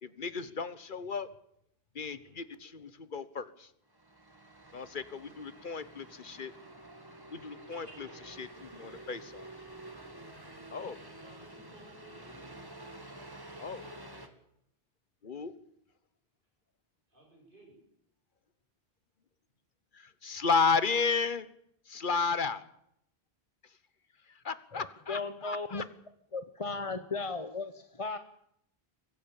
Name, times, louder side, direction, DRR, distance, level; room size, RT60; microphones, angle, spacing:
voice 1, 0.0-1.3 1.9-3.7 4.7-6.5 7.3-8.5 8.8-9.5 10.7-11.0 13.6-13.9 15.2-15.5 19.9-21.5 21.9-22.6 24.4-25.8, left 5 dB, 50° left, 15 dB, 1.3 m, -33 dB
sound 1, 3.9-14.3, right 1 dB, 20° right, 2.2 m, -49 dB
voice 2, 7.7-9.1 10.3-12.6 17.1-17.8 25.0-25.2, right 2 dB, 55° right, 0 dB, 8.1 m, -58 dB
voice 3, 24.7-25.8 26.3-28.2, left 3 dB, 35° left, 10 dB, 1.0 m, -36 dB
23.0 x 15.5 x 9.0 m, 0.73 s
omnidirectional pair, 1.1 m